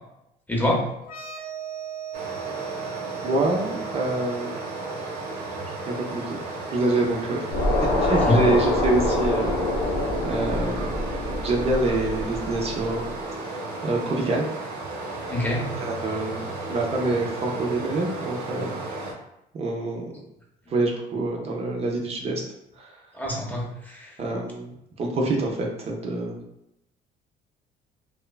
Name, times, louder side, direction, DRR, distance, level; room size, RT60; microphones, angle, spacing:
voice 1, 0.5-0.9 8.3-8.5 15.3-15.7 23.1-24.2, left 1 dB, 10° left, -2 dB, 0.6 m, -25 dB
sound 1, 1.0-8.5, right 9 dB, 55° left, 0.6 m, -39 dB
Stream, 2.1-19.1, right 2 dB, 80° right, 0.7 m, -34 dB
voice 2, 3.2-4.5 5.9-6.4 6.7-7.5 7.8-9.5 10.2-10.9 11.4-13.2 13.8-14.5 15.8-19.1 19.5-20.1 20.7-22.4 22.8-23.0 24.2-26.4, right 2 dB, 40° right, 0 dB, 0.4 m, -26 dB
sound 2, 7.5-12.8, left 2 dB, 85° left, 0.8 m, -25 dB
3.0 x 2.1 x 2.2 m, 0.82 s
cardioid pair, 110°, 17 cm